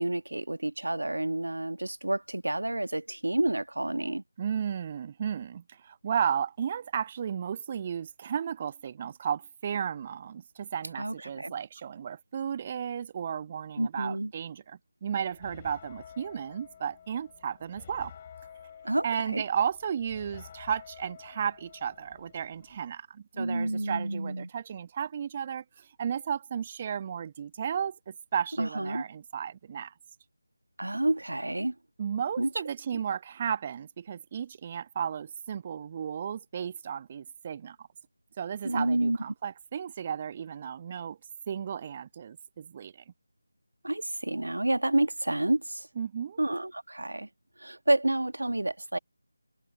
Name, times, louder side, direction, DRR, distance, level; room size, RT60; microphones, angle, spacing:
voice 1, 0.0-4.2 11.0-11.5 13.8-14.3 18.8-19.0 19.3-19.4 23.3-24.5 28.6-29.0 30.8-31.7 32.4-32.5 38.6-39.2 43.8-45.9 46.4-47.3 47.6-49.0, right 1 dB, 65° right, 1.6 m, -29 dB
voice 2, 4.4-18.1 19.0-29.9 32.0-37.9 38.4-41.2 41.5-42.9 46.0-46.4, right 8 dB, 20° right, 1.5 m, -34 dB
sound 1, 15.2-22.9, left 8 dB, 20° left, 7.7 m, -50 dB
figure-of-eight pair, 160°, 0 cm